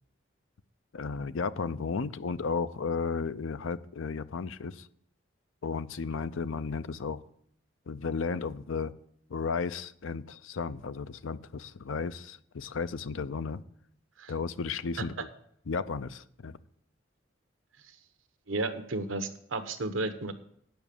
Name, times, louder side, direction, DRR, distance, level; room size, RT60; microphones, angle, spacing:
voice 1, 0.9-4.9 5.6-7.2 7.9-8.9 9.3-13.6 14.3-15.3 15.7-16.6, left 5 dB, 85° left, 14 dB, 0.5 m, -34 dB
voice 2, 18.5-20.3, right 2 dB, 85° right, 8 dB, 1.1 m, -33 dB
9.4 x 6.1 x 8.5 m, 0.67 s
head